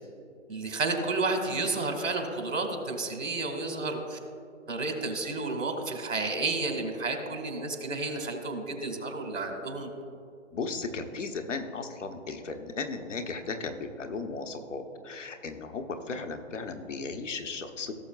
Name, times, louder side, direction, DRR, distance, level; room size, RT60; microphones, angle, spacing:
voice 1, 0.5-4.2 4.7-9.9, right 3 dB, 85° right, 4 dB, 2.1 m, -31 dB
voice 2, 10.5-17.9, left 4 dB, 70° left, 5 dB, 1.1 m, -36 dB
17.0 x 6.7 x 2.4 m, 2.4 s
hypercardioid pair, 155°, 38 cm